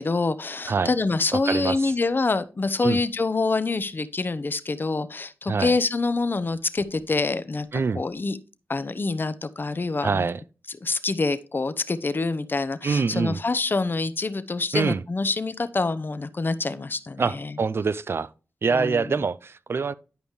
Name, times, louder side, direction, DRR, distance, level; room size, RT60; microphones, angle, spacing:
voice 1, 0.0-8.4 8.7-10.3 10.7-17.6 18.7-19.2, left 3 dB, 45° left, 0.8 m, -26 dB
voice 2, 10.0-10.4 12.8-13.4 14.7-15.0 17.2-18.3 18.6-19.9, right 5 dB, 55° right, 0.4 m, -25 dB
11.0 x 5.1 x 3.2 m
cardioid pair, 40°, 5 cm